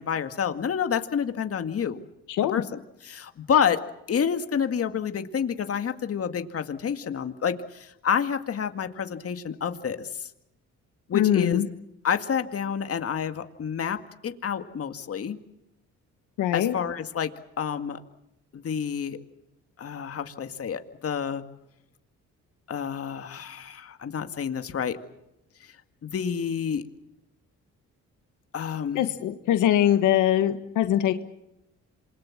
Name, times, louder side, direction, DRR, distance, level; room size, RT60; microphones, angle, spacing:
voice 1, 0.0-2.1 2.5-2.6 3.0-3.8 4.1-10.3 11.1-11.6 12.0-15.4 16.5-17.3 17.6-18.0 18.5-19.2 19.8-21.4 22.7-25.0 25.6-25.7 26.0-26.8 28.5-29.0, left 7 dB, 50° left, 8 dB, 2.1 m, -28 dB
voice 2, 11.1-11.6 16.4-16.8 28.9-31.1, left 11 dB, 90° left, 8 dB, 1.5 m, -22 dB
27.0 x 22.0 x 7.4 m, 0.87 s
cardioid pair, 90°, 30 cm